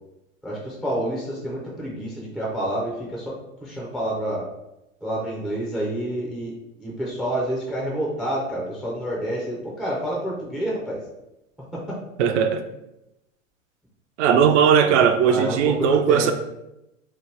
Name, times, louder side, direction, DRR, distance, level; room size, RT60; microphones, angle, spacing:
voice 1, 0.4-3.3 3.6-4.4 5.0-11.0 11.7-12.0 15.3-16.3, right 1 dB, ahead, -4 dB, 0.3 m, -28 dB
voice 2, 12.2-12.6 14.2-16.3, right 7 dB, 65° right, 8 dB, 0.5 m, -18 dB
2.9 x 2.1 x 3.2 m, 0.89 s
hypercardioid pair, 110°, 40 cm